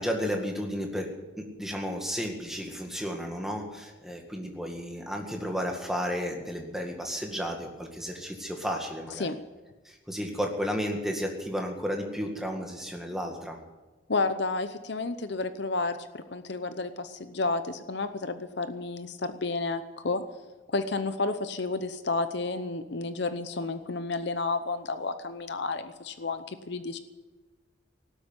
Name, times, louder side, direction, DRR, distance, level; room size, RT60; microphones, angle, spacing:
voice 1, 0.0-9.3 9.9-13.6, equal, ahead, 2 dB, 1.9 m, -33 dB
voice 2, 14.1-20.2 20.7-27.0, left 3 dB, 60° left, 10 dB, 0.8 m, -31 dB
18.0 x 8.2 x 9.6 m, 1.2 s
head